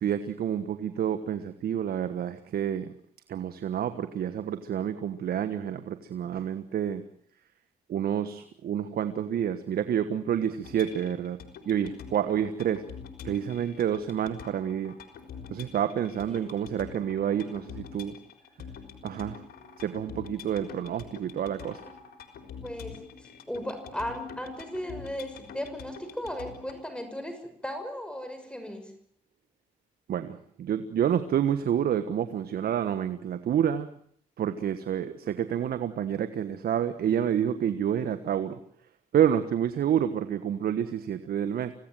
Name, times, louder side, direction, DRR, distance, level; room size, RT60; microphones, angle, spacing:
voice 1, 0.0-2.9 3.3-7.0 7.9-11.4 11.7-12.8 13.2-14.9 15.5-18.1 19.0-19.4 19.8-21.8 30.1-33.9 34.4-38.6 39.1-41.7, right 9 dB, 75° right, 10 dB, 1.4 m, -28 dB
sound 1, 10.6-26.8, left 7 dB, 80° left, 4.1 m, -46 dB
voice 2, 15.7-16.6 22.6-28.9, equal, 5° left, 7 dB, 6.2 m, -37 dB
26.0 x 17.0 x 9.1 m, 0.66 s
cardioid pair, 60°, 16 cm